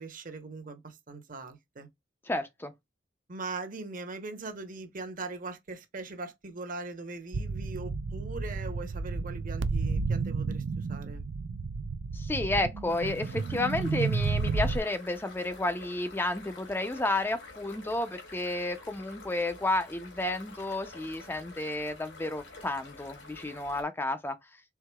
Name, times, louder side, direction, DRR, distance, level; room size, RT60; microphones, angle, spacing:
voice 1, 0.0-1.9 3.3-11.2, right 3 dB, 45° right, 0.9 m, -40 dB
voice 2, 2.3-2.7 12.1-24.4, left 2 dB, 10° left, 0.4 m, -31 dB
sound 1, 7.3-14.8, right 4 dB, 75° right, 0.5 m, -31 dB
sound 2, 12.9-23.8, left 3 dB, 85° left, 2.2 m, -49 dB
4.7 x 3.7 x 2.3 m
head